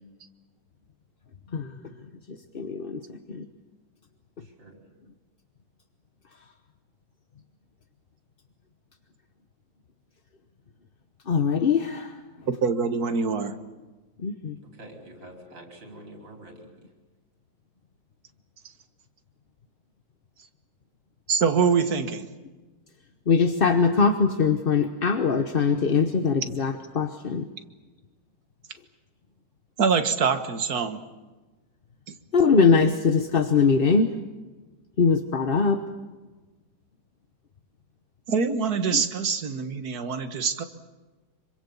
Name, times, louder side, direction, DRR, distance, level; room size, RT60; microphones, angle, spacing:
voice 1, 2.5-3.0 3.3-3.4 11.3-12.2 14.2-14.6 23.3-27.5 32.3-34.1 35.0-35.8 38.9-39.0, left 5 dB, 40° left, 8 dB, 1.0 m, -22 dB
voice 2, 4.4-4.8 14.7-16.7, right 1 dB, 80° right, 2 dB, 5.6 m, -46 dB
voice 3, 12.6-13.6 21.3-22.3 29.8-31.0 32.1-32.2 38.3-40.6, right 5 dB, 55° right, 9 dB, 1.9 m, -24 dB
26.5 x 25.0 x 7.1 m, 1.2 s
omnidirectional pair, 2.0 m